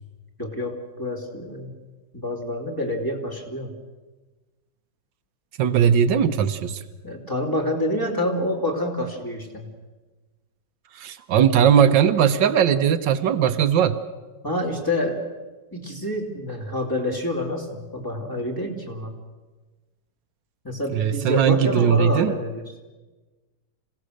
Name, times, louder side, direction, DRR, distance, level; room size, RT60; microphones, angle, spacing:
voice 1, 0.4-1.7 2.1-3.7 7.0-9.7 14.4-15.2 15.7-19.1 20.6-22.6, left 1 dB, 10° left, -1 dB, 2.7 m, -27 dB
voice 2, 5.6-6.8 10.9-14.0 20.9-22.4, right 8 dB, 80° right, 9 dB, 1.5 m, -19 dB
26.5 x 17.0 x 6.5 m, 1.3 s
omnidirectional pair, 2.0 m